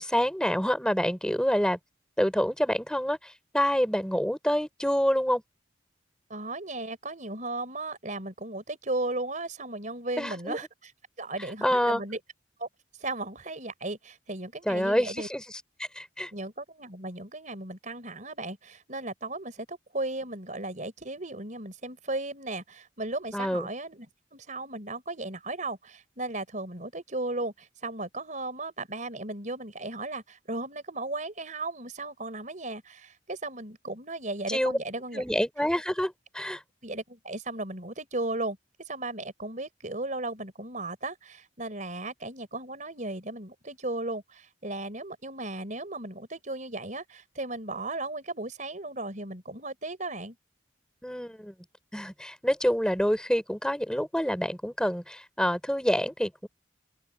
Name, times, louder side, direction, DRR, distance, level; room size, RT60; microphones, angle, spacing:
voice 1, 0.0-1.8 2.2-5.4 10.2-10.6 11.6-12.0 14.7-15.4 16.0-16.3 23.3-23.7 34.5-34.7 35.1-36.6 51.0-51.5 51.9-56.5, equal, 5° left, 3.6 m, -27 dB
voice 2, 6.3-10.9 11.2-12.2 12.6-12.7 13.0-15.3 16.3-24.1 24.3-35.2 36.8-38.6 38.9-50.4, right 2 dB, 40° right, 4.5 m, -36 dB
open air
head